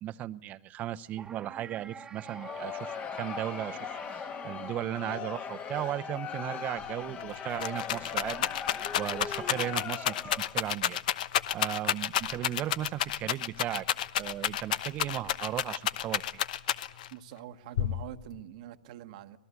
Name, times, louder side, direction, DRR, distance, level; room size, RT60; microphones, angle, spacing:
voice 1, 0.0-2.9 3.2-3.8 4.2-8.5 8.9-11.0 11.5-13.9 14.2-16.4, right 13 dB, 35° right, 0.9 m, -36 dB
sound 1, 1.2-5.3, right 6 dB, 15° right, 1.3 m, -48 dB
Crowd, 2.2-10.7, left 7 dB, 30° left, 1.7 m, -39 dB
Rattle, 6.8-6.9 7.2-17.1 17.8-18.4, left 11 dB, 65° left, 1.0 m, -30 dB
voice 2, 17.1-19.4, right 13 dB, 60° right, 1.3 m, -45 dB
26.0 x 20.0 x 8.3 m
hypercardioid pair, 115°, 5 cm